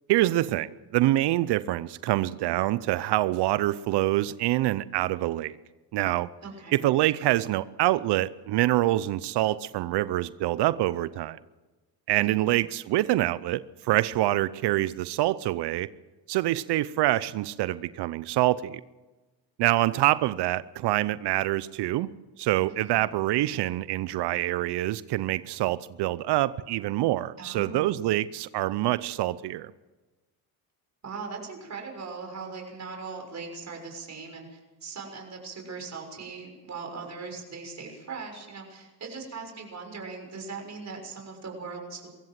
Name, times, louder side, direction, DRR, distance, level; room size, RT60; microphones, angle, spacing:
voice 1, 0.1-5.6 5.9-6.3 6.7-11.4 12.1-15.9 16.3-18.8 19.6-22.1 22.4-29.7, right 15 dB, 75° right, 17 dB, 0.7 m, -26 dB
voice 2, 6.4-6.8 12.2-12.5 22.8-23.0 27.4-28.1 31.0-42.1, right 4 dB, 40° right, 2 dB, 6.4 m, -40 dB
22.5 x 16.0 x 7.6 m, 1.2 s
cardioid pair, 85°, 41 cm